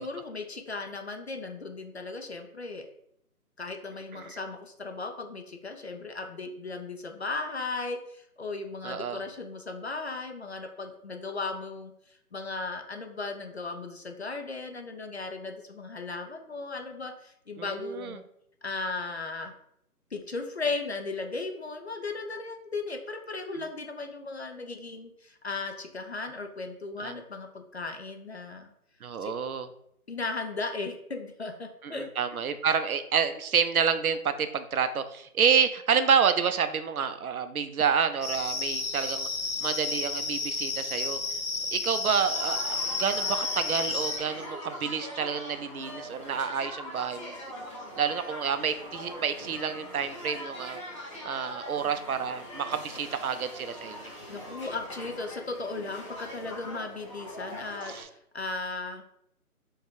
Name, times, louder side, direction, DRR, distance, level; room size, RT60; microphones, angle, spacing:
voice 1, 0.0-2.9 3.6-11.9 12.3-18.2 18.6-19.5 20.1-28.7 29.2-29.3 30.1-32.1 54.3-59.0, left 3 dB, 45° left, 5 dB, 0.5 m, -36 dB
voice 2, 8.8-9.2 17.6-18.1 27.0-27.1 29.0-29.7 31.8-39.3 39.6-41.2 41.7-47.3 48.0-50.8 51.2-54.1 57.9-58.1, right 7 dB, 70° right, 10 dB, 0.6 m, -28 dB
sound 1, 38.2-44.2, left 3 dB, 65° left, 1.5 m, -31 dB
sound 2, 42.3-58.0, left 1 dB, 20° left, 0.8 m, -42 dB
4.5 x 2.4 x 4.5 m, 0.73 s
figure-of-eight pair, 160°, 46 cm